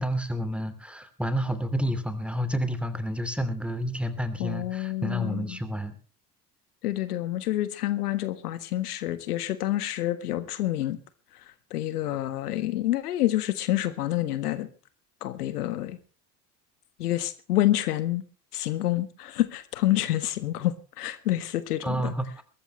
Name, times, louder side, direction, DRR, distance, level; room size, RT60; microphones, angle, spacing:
voice 1, 0.0-5.9 21.8-22.2, equal, ahead, 12 dB, 2.8 m, -29 dB
voice 2, 4.4-5.6 6.8-11.0 11.3-11.4 11.7-14.7 15.2-16.0 17.0-18.2 18.5-22.1, left 14 dB, 75° left, 13 dB, 1.6 m, -28 dB
22.0 x 14.5 x 3.2 m, 0.37 s
figure-of-eight pair, 65°, 47 cm